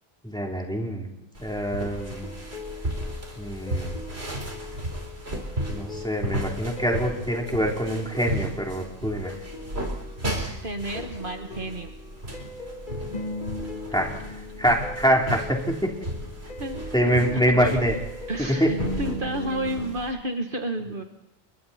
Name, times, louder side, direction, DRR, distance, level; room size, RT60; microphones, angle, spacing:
voice 1, 0.2-1.1 1.4-2.3 3.4-4.0 5.7-9.3 13.9-14.1 14.6-15.9 16.9-17.9 18.4-18.7, equal, 5° left, 0 dB, 3.5 m, -25 dB
sound 1, 1.4-20.1, right 1 dB, 85° right, 4.3 m, -34 dB
sound 2, 2.0-19.9, left 2 dB, 50° left, 2.9 m, -39 dB
voice 2, 10.6-11.9 16.6-17.1 17.5-17.8 18.3-21.0, right 1 dB, 55° right, 5 dB, 1.7 m, -31 dB
29.0 x 22.0 x 4.3 m, 0.87 s
omnidirectional pair, 1.1 m